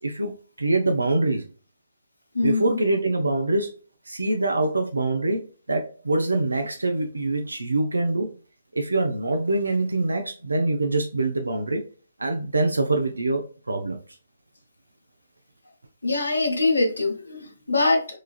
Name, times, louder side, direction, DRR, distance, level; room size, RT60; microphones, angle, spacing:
voice 1, 0.0-1.4 2.4-3.7 4.1-8.3 8.7-11.8 12.2-14.0, right 2 dB, 85° right, 0.4 m, -24 dB
voice 2, 2.3-2.8 16.0-18.2, left 3 dB, 85° left, 0.7 m, -23 dB
3.0 x 2.4 x 2.2 m
figure-of-eight pair, 135°, 0 cm